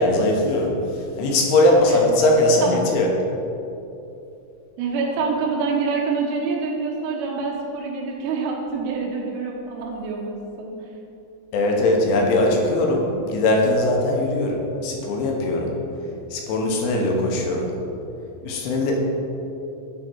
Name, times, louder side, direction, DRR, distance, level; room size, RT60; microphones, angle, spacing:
voice 1, 0.0-3.1 11.5-15.8 16.3-17.8 18.4-19.0, left 1 dB, 85° left, 0 dB, 3.3 m, -20 dB
voice 2, 4.8-10.8, right 4 dB, 90° right, -1 dB, 3.3 m, -26 dB
8.9 x 3.6 x 4.3 m, 2.9 s
omnidirectional pair, 5.4 m